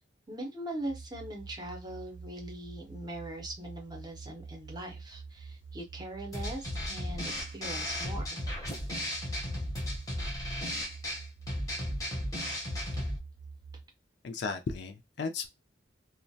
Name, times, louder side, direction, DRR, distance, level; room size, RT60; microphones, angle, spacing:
voice 1, 0.3-8.4, right 1 dB, 20° right, 0.6 m, -41 dB
sound 1, 0.8-13.8, right 4 dB, 85° right, 0.4 m, -47 dB
sound 2, 6.3-13.2, left 1 dB, 15° left, 0.6 m, -35 dB
voice 2, 14.2-15.5, left 4 dB, 60° left, 0.4 m, -35 dB
2.3 x 2.1 x 2.6 m
head